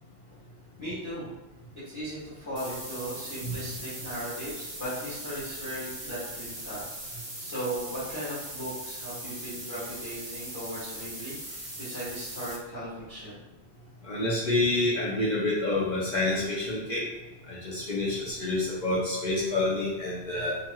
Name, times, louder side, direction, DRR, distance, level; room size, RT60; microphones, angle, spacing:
voice 1, 0.8-1.3 1.8-13.3, equal, 25° left, -14 dB, 1.2 m, -37 dB
sound 1, 2.6-12.6, right 1 dB, 40° right, 0.8 m, -40 dB
voice 2, 14.1-17.0 17.5-20.6, left 2 dB, 50° left, -6 dB, 0.6 m, -28 dB
2.9 x 2.8 x 2.2 m, 1.1 s
omnidirectional pair, 1.2 m